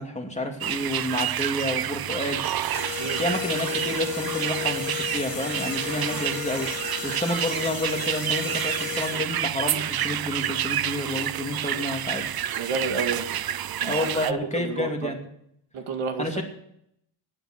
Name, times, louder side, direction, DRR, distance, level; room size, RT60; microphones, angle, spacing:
voice 1, 0.0-2.4 3.2-6.7 7.0-12.3 13.8-15.2 16.2-16.4, left 1 dB, 15° left, 2 dB, 2.5 m, -30 dB
sound 1, 0.6-14.3, right 11 dB, 50° right, 0.6 m, -29 dB
sound 2, 2.7-9.5, left 13 dB, 60° left, 0.8 m, -34 dB
voice 2, 12.6-13.3 13.8-15.1 15.7-16.4, right 5 dB, 85° right, 6 dB, 2.2 m, -30 dB
12.5 x 10.5 x 6.5 m, 0.71 s
cardioid pair, 110°, 48 cm